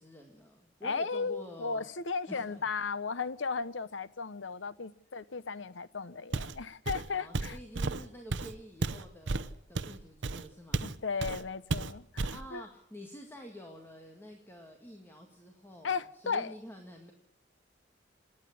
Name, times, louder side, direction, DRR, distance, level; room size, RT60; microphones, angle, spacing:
voice 1, 0.0-1.8 2.3-2.6 7.1-11.0 12.3-17.1, equal, 10° left, 2.1 m, -49 dB
voice 2, 0.8-7.6 10.8-12.6 15.8-16.5, left 5 dB, 80° left, 0.9 m, -35 dB
Walk footsteps, 6.3-6.6 6.9-11.0 11.2-11.4 11.7-12.4, right 3 dB, 70° right, 0.8 m, -33 dB
27.5 x 9.9 x 9.8 m
head